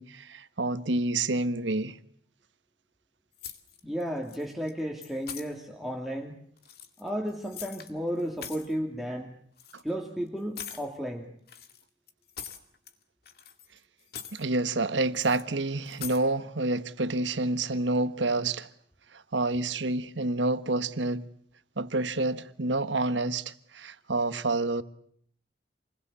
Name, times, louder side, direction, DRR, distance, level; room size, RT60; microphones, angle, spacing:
voice 1, 0.0-2.0 9.7-9.8 14.3-18.7 19.1-21.2 21.8-24.8, right 2 dB, 85° right, 1.3 m, -28 dB
sound 1, 3.4-4.0 4.3-4.7 5.0-5.5 6.6-7.9 8.2-8.7 9.6-9.8 10.6-10.9 11.5-12.9 13.3-13.8 14.0-14.4 15.1-15.4 15.9-16.2, left 8 dB, 55° left, 2.2 m, -42 dB
voice 2, 3.8-6.4 7.0-9.3 9.8-11.3, equal, ahead, 2.4 m, -33 dB
28.0 x 21.0 x 8.4 m
head